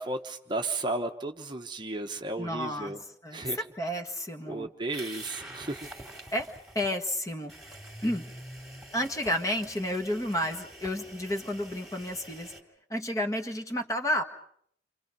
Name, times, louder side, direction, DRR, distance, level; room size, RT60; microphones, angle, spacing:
voice 1, 0.0-3.0 3.3-3.6 4.5-5.8, right 2 dB, 25° right, 4 dB, 1.1 m, -34 dB
voice 2, 2.4-2.9 3.2-3.5 3.8-4.7 6.3-6.5 6.7-7.5 8.0-8.3 8.9-12.5 12.9-14.2, left 1 dB, 20° left, 6 dB, 1.6 m, -31 dB
sound 1, 4.9-6.9 7.5-12.6, right 1 dB, ahead, 2.9 m, -46 dB
29.5 x 27.0 x 5.4 m, 0.64 s
head